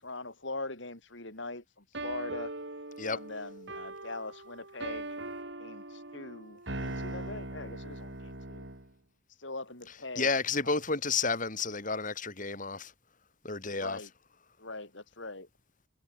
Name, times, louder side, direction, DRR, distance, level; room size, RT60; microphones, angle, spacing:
voice 1, 0.0-2.5 3.0-5.2 5.6-8.7 9.4-10.3 10.6-10.7 13.7-14.1 14.6-15.5, left 2 dB, 60° left, 4.7 m, -42 dB
sound 1, 1.9-8.9, right 2 dB, 55° right, 3.7 m, -40 dB
voice 2, 10.2-12.9 13.4-14.0, left 4 dB, 40° left, 3.7 m, -31 dB
head